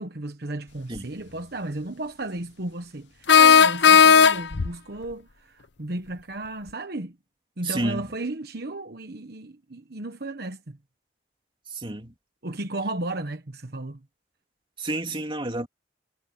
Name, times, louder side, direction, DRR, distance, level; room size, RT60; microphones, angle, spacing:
voice 1, 0.0-7.2 7.6-10.8 12.4-14.0, right 2 dB, 60° right, 1.2 m, -34 dB
sound 1, 1.0-1.1 3.3-4.7, left 6 dB, 75° left, 0.8 m, -14 dB
voice 2, 7.6-8.1 11.7-12.1 14.8-15.7, right 2 dB, 30° right, 2.9 m, -29 dB
head